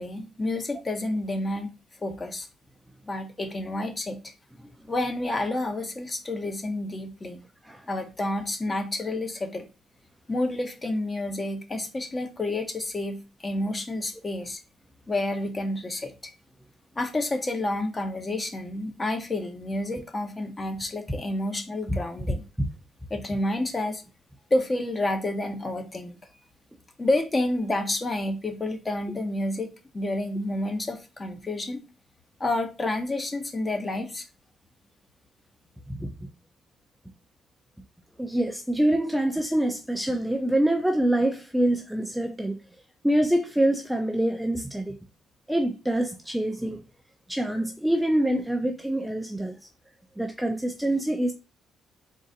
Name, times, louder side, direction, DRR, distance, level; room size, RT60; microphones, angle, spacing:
voice 1, 0.0-1.7 2.0-2.5 3.0-4.2 4.9-7.4 7.9-9.7 10.3-14.6 15.1-16.3 17.0-22.4 23.1-24.0 24.5-26.2 27.0-31.8 32.4-34.2, left 2 dB, 25° left, 0.9 m, -29 dB
voice 2, 38.2-42.6 43.0-44.9 45.5-46.8 47.3-49.5 50.2-51.3, right 1 dB, 5° right, 0.5 m, -25 dB
3.9 x 2.6 x 3.8 m
cardioid pair, 90°, 0 cm